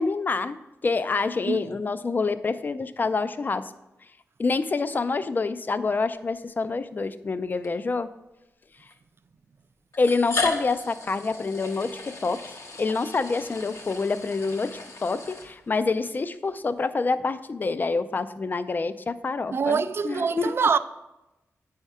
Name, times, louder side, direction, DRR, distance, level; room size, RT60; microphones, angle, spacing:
voice 1, 0.0-3.7 4.4-8.1 10.0-20.5, left 4 dB, 35° left, 0.4 m, -27 dB
sound 1, 6.5-6.6 7.6-7.7 8.9-9.0 9.9-15.9, left 3 dB, 65° left, 0.9 m, -35 dB
voice 2, 19.5-20.8, right 5 dB, 50° right, 0.3 m, -24 dB
9.0 x 3.5 x 5.4 m
wide cardioid pair, 95°, 5 cm